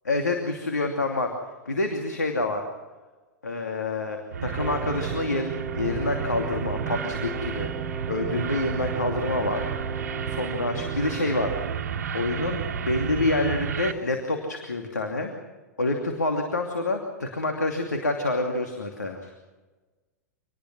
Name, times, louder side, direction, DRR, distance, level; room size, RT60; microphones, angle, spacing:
voice 1, 0.1-1.3 1.7-2.6 3.4-7.7 8.1-9.7 10.0-15.3 15.8-19.3, left 2 dB, 80° left, 4 dB, 2.8 m, -27 dB
sound 1, 4.3-13.9, right 7 dB, 70° right, 1.2 m, -31 dB
Wind instrument woodwind instrument, 4.5-11.9, right 4 dB, ahead, 1.9 m, -38 dB
26.5 x 20.0 x 6.2 m, 1.2 s
figure-of-eight pair, 100°, 9 cm